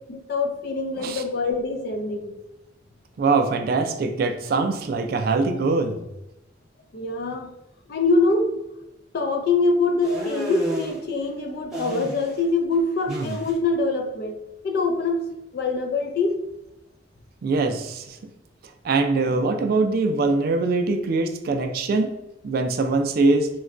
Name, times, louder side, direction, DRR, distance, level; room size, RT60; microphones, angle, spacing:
voice 1, 0.1-2.3 6.9-7.5 7.9-8.5 9.1-14.4 14.6-15.3 15.5-16.3, left 3 dB, 60° left, 4 dB, 0.4 m, -24 dB
voice 2, 3.2-6.0 13.1-13.4 17.4-18.2 18.8-22.1 22.4-23.5, right 3 dB, 55° right, 6 dB, 0.3 m, -22 dB
sound 1, 10.0-11.0 11.7-12.5 12.7-13.5, right 1 dB, 5° right, 0.8 m, -31 dB
3.9 x 2.2 x 2.4 m, 0.91 s
head